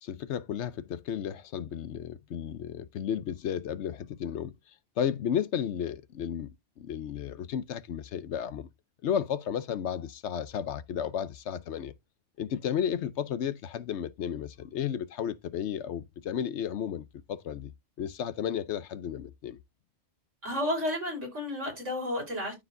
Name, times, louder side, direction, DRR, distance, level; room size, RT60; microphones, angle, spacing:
voice 1, 0.0-4.5 5.0-6.5 6.8-8.7 9.0-11.9 12.4-17.7 18.0-19.6, left 9 dB, 70° left, 0.9 m, -33 dB
voice 2, 20.4-22.5, left 1 dB, 80° right, 4.8 m, -32 dB
13.0 x 4.8 x 2.6 m
omnidirectional pair, 1.2 m